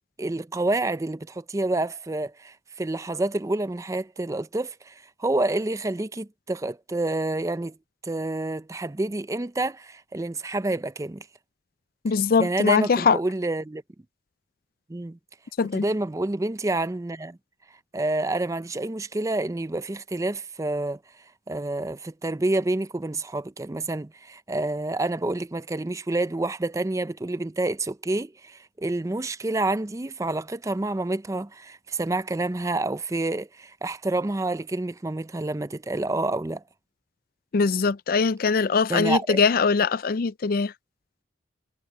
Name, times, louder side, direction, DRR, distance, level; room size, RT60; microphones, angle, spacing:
voice 1, 0.2-7.7 8.0-11.3 12.4-13.8 14.9-15.2 15.7-17.4 17.9-21.0 21.5-36.6 38.9-39.4, right 2 dB, 15° right, 0.4 m, -28 dB
voice 2, 12.0-13.2 15.6-15.8 37.5-40.7, left 5 dB, 50° left, 0.4 m, -22 dB
head